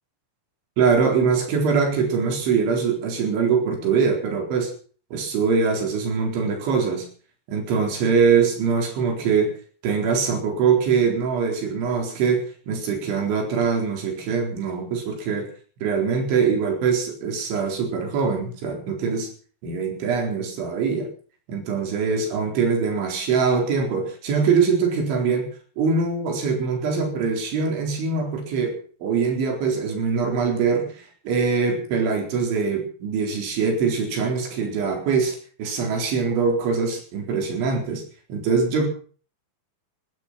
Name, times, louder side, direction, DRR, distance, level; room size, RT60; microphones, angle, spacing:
voice 1, 0.8-4.7 5.1-7.1 7.5-9.5 9.8-15.5 15.8-19.3 19.6-21.1 21.5-25.5 25.8-38.0 38.3-38.9, right 5 dB, 85° right, 2 dB, 6.5 m, -23 dB
18.0 x 13.0 x 6.0 m, 0.43 s
omnidirectional pair, 5.2 m